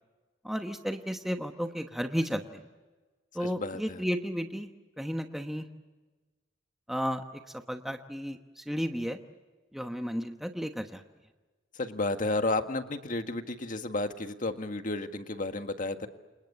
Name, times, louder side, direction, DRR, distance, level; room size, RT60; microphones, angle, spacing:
voice 1, 0.4-2.6 3.3-4.7 5.0-5.7 6.9-7.2 7.7-9.2 9.7-11.0, equal, ahead, 5 dB, 1.1 m, -33 dB
voice 2, 3.4-4.0 11.7-16.1, left 2 dB, 45° left, 7 dB, 1.7 m, -32 dB
29.5 x 27.5 x 6.9 m, 1.3 s
head